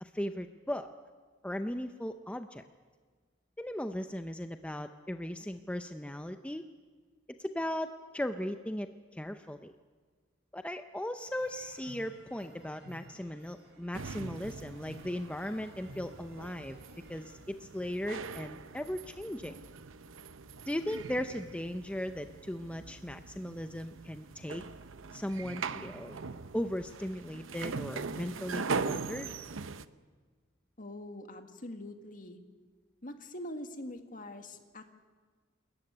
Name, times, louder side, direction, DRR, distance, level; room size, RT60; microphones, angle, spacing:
voice 1, 0.0-0.9 1.4-2.6 3.6-6.6 7.4-9.7 10.5-16.8 17.1-19.6 20.7-24.6 25.1-26.2 26.5-29.3, left 1 dB, 5° left, 8 dB, 0.6 m, -37 dB
sound 1, 11.2-17.4, right 1 dB, 60° right, 6.0 m, -55 dB
sound 2, 13.9-29.9, right 4 dB, 85° right, 0.8 m, -41 dB
voice 2, 30.8-32.4 33.0-34.9, left 1 dB, 45° left, 6 dB, 1.8 m, -44 dB
27.5 x 14.5 x 9.7 m, 1.5 s
head